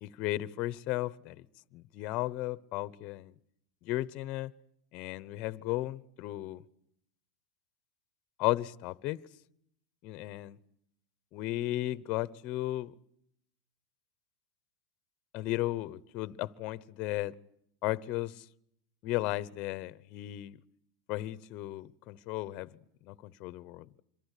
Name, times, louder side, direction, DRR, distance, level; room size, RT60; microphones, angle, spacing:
voice 1, 0.0-1.4 1.7-3.3 3.8-4.5 4.9-6.6 8.4-9.2 10.0-10.6 11.3-12.9 15.3-17.3 17.8-18.4 19.0-20.6 21.1-22.7 23.1-24.0, left 17 dB, 45° left, 1.0 m, -35 dB
26.5 x 23.0 x 8.4 m
supercardioid pair, 130°, 3 cm